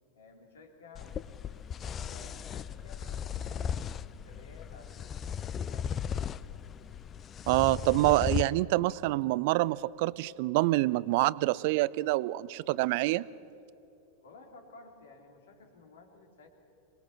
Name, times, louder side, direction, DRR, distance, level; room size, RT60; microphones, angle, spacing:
voice 1, 0.1-1.2 2.0-6.2 8.4-8.8 14.2-16.5, left 3 dB, 65° left, 3 dB, 3.2 m, -54 dB
sound 1, 0.9-8.4, left 8 dB, 25° left, 0.5 m, -36 dB
voice 2, 7.5-13.3, right 19 dB, 50° right, 21 dB, 0.4 m, -26 dB
26.0 x 20.5 x 5.9 m, 2.9 s
figure-of-eight pair, 90°, 0 cm